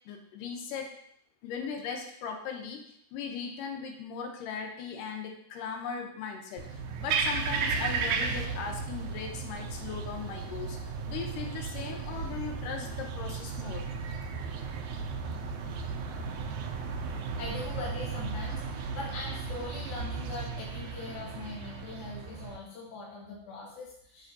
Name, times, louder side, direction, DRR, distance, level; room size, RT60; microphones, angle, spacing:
voice 1, 0.1-0.9 1.4-2.8 3.1-6.7 7.0-13.8, left 6 dB, 90° left, 3 dB, 2.4 m, -38 dB
sound 1, 6.6-22.6, right 5 dB, 75° right, 1.8 m, -35 dB
voice 2, 17.4-24.3, left 3 dB, 60° left, -6 dB, 2.4 m, -41 dB
7.1 x 5.9 x 2.7 m, 0.68 s
omnidirectional pair, 3.7 m